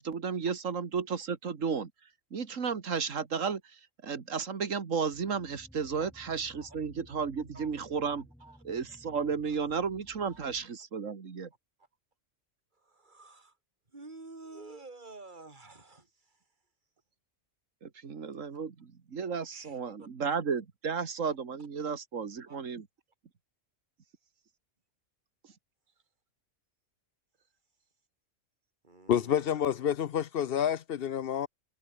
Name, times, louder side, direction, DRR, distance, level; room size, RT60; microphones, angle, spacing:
voice 1, 0.0-1.9 2.3-8.2 8.6-11.5 17.8-22.9, right 6 dB, 80° right, 2.1 m, -33 dB
sound 1, 5.1-10.7, equal, ahead, 3.2 m, -57 dB
voice 2, 12.7-13.6 13.9-16.4 19.5-20.1 22.5-22.6 28.8-29.9, right 3 dB, 40° right, 3.5 m, -50 dB
voice 3, 29.1-31.5, left 9 dB, 55° left, 0.8 m, -28 dB
omnidirectional pair, 1.3 m